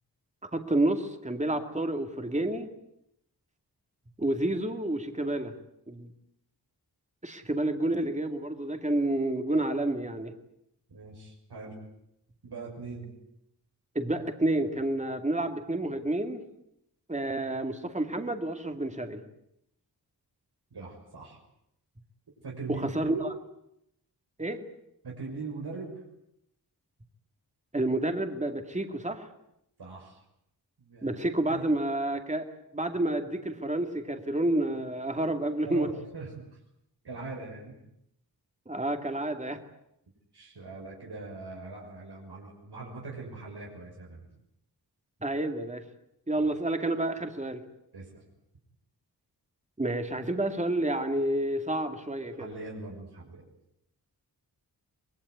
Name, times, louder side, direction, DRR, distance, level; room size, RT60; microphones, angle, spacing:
voice 1, 0.5-2.7 4.2-5.5 5.9-6.1 7.2-10.3 13.9-16.4 17.1-19.2 22.7-23.1 24.4-24.6 27.7-29.3 31.0-32.5 32.7-35.9 38.7-39.6 45.2-45.8 46.3-47.6 49.8-52.5, right 1 dB, 20° right, 6 dB, 2.5 m, -29 dB
voice 2, 10.9-11.7 12.4-13.1 20.7-21.4 22.4-23.0 25.0-26.0 29.8-30.2 30.8-31.6 35.6-36.5 37.0-37.7 40.3-44.2 46.4-46.5 47.9-48.2 52.4-53.4, right 3 dB, 85° right, -2 dB, 6.4 m, -41 dB
24.5 x 21.5 x 9.5 m, 0.79 s
wide cardioid pair, 100°, 38 cm